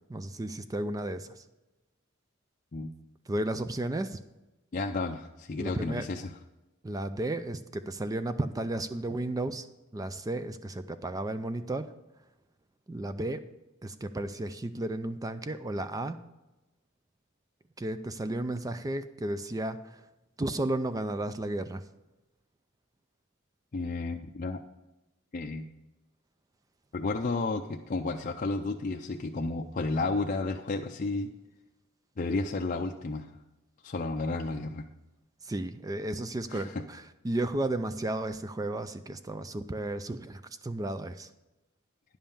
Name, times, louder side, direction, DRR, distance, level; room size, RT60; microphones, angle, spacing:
voice 1, 0.1-1.4 3.3-4.2 5.6-6.1 6.8-9.7 9.9-11.9 12.9-13.4 13.8-16.3 17.8-20.0 20.4-21.8 35.4-41.3, right 1 dB, 15° right, 11 dB, 0.4 m, -33 dB
voice 2, 4.7-6.3 23.7-24.6 25.3-25.7 26.9-31.3 32.2-33.3 33.8-34.8 36.5-36.7, left 3 dB, 40° left, 2 dB, 0.5 m, -32 dB
10.0 x 5.5 x 7.0 m, 1.0 s
head